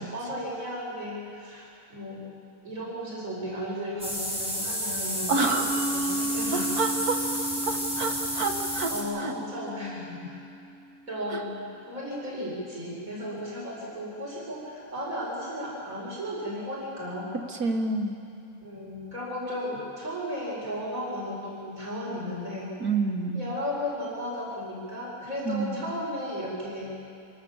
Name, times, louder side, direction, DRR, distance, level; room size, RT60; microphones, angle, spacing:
voice 1, 0.0-2.2 2.6-5.5 5.9-6.7 8.9-10.3 11.1-17.4 18.6-22.7 23.3-26.9, left 1 dB, 65° right, -5 dB, 5.6 m, -35 dB
sound 1, 4.0-9.0, equal, 5° right, 5.0 m, -31 dB
voice 2, 5.3-5.7 6.5-8.9 9.2-9.3 11.3-11.4 17.5-18.2 22.8-23.4 25.5-25.8, right 3 dB, 85° right, 3 dB, 2.3 m, -28 dB
Mallet percussion, 5.5-10.9, right 1 dB, 65° left, 3.7 m, -34 dB
26.0 x 18.0 x 7.3 m, 2.4 s
omnidirectional pair, 1.6 m